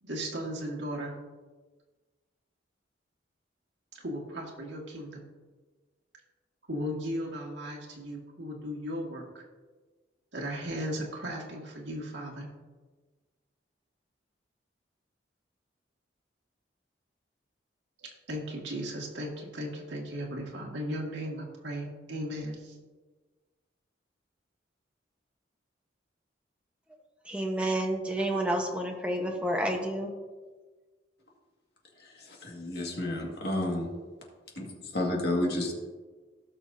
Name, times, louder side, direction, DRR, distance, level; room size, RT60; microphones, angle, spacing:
voice 1, 0.0-1.2 3.9-5.2 6.7-9.4 10.3-12.5 18.3-22.8, equal, 75° right, -1 dB, 2.0 m, -36 dB
voice 2, 27.2-30.1, right 1 dB, 5° right, 1 dB, 1.1 m, -29 dB
voice 3, 32.0-33.9 34.6-35.7, left 1 dB, 55° left, -1 dB, 2.0 m, -31 dB
17.5 x 6.3 x 2.7 m, 1.3 s
head